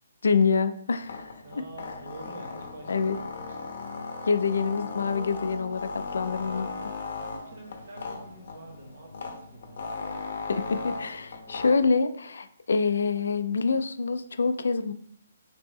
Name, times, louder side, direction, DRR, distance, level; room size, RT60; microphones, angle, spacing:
voice 1, 0.2-1.3 2.9-3.2 4.3-6.9 10.5-14.9, left 4 dB, 85° left, 10 dB, 0.3 m, -26 dB
sound 1, 1.0-11.9, left 4 dB, 50° left, 0.7 m, -37 dB
voice 2, 1.4-3.7 4.1-4.3 7.2-9.9, right 2 dB, 55° right, 1 dB, 1.0 m, -47 dB
3.5 x 2.9 x 3.1 m, 0.64 s
hypercardioid pair, 165°, 0 cm